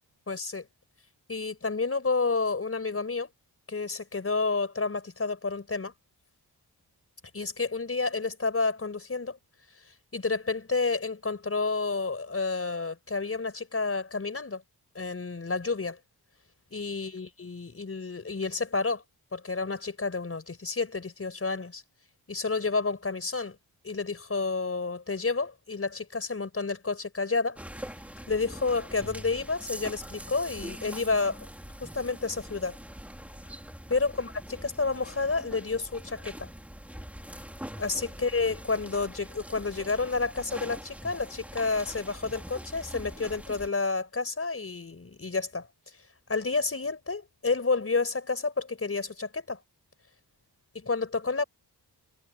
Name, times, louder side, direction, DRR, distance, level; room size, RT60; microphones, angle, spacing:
voice 1, 0.3-0.7 1.3-3.3 3.7-5.9 7.3-9.4 10.1-14.6 14.9-16.0 16.7-19.0 19.3-21.8 22.3-23.5 23.8-27.6 28.3-31.5 31.8-32.8 33.9-34.3 34.6-36.5 37.8-45.7 46.3-49.6 50.8-51.4, left 4 dB, 35° left, 5.0 m, -30 dB
sound 1, 27.6-43.7, equal, 5° right, 2.9 m, -43 dB
wide cardioid pair, 120°, 41 cm